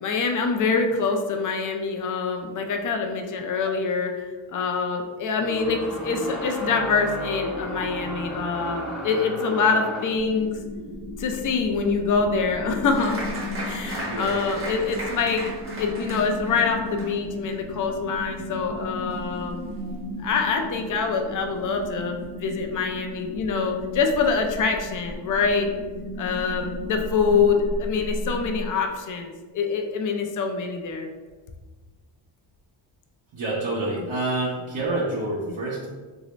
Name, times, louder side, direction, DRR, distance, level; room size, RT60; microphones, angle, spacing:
voice 1, 0.0-4.1 4.5-10.5 11.2-13.2 13.6-15.4 15.8-19.6 20.2-25.7 26.2-31.1, left 5 dB, 40° left, 4 dB, 0.5 m, -25 dB
sound 1, 5.4-10.2, equal, ahead, 0.6 m, -33 dB
sound 2, 10.1-28.7, left 1 dB, 80° left, 0.9 m, -35 dB
Applause, 12.9-20.0 20.3-21.0 21.4-21.5 21.8-22.3, right 1 dB, 25° right, 0.9 m, -37 dB
voice 2, 14.0-14.4 19.8-20.0 33.3-35.9, right 2 dB, 65° right, -6 dB, 0.8 m, -28 dB
3.1 x 2.7 x 3.0 m, 1.3 s
cardioid pair, 100°, 49 cm